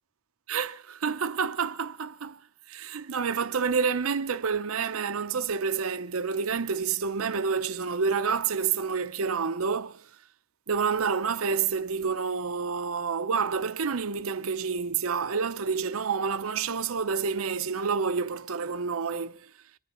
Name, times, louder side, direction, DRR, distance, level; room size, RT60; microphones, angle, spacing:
voice 1, 0.5-2.4 2.7-10.0 10.7-19.4, right 5 dB, 80° right, 0.7 m, -28 dB
27.0 x 11.0 x 4.3 m
head